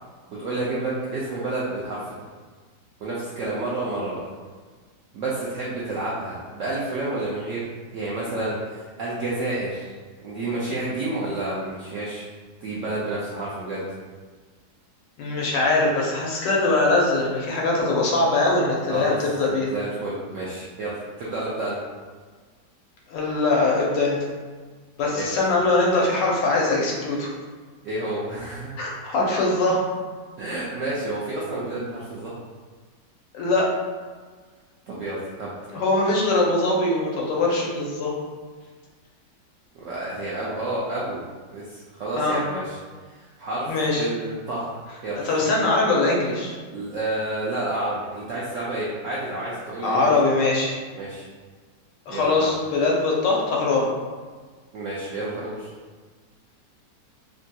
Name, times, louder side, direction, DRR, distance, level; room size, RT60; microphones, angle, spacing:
voice 1, 0.4-2.3 3.0-4.2 5.1-7.7 7.9-9.9 10.2-12.3 12.6-13.8 18.9-19.2 19.6-21.8 25.1-25.5 27.8-28.7 30.4-32.3 34.9-35.5 39.7-41.2 41.5-42.8 43.0-45.3 46.7-50.3 51.0-51.3 52.1-52.5 54.7-55.7, right 2 dB, 75° right, -7 dB, 0.7 m, -30 dB
voice 2, 15.2-19.7 23.1-24.2 25.0-27.3 28.8-29.9 33.3-33.7 35.7-38.1 42.2-42.4 43.7-44.1 45.2-46.6 49.8-50.8 52.1-53.9, left 2 dB, 85° left, -3 dB, 1.4 m, -22 dB
3.4 x 2.6 x 2.2 m, 1.5 s
omnidirectional pair, 1.9 m